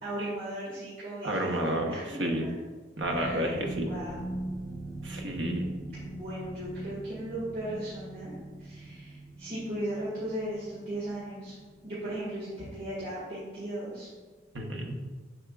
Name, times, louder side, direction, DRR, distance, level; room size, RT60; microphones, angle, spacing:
voice 1, 0.0-2.5 3.0-4.3 5.7-11.5 11.8-14.1, right 1 dB, 55° right, -10 dB, 1.9 m, -37 dB
voice 2, 1.2-2.4 3.0-3.9 5.0-5.7 14.5-15.0, right 1 dB, 90° right, 2 dB, 1.0 m, -31 dB
sound 1, 3.0-13.7 14.0-14.3 14.7-14.8, right 1 dB, 10° left, 2.1 m, -41 dB
7.0 x 6.8 x 2.4 m, 1.3 s
head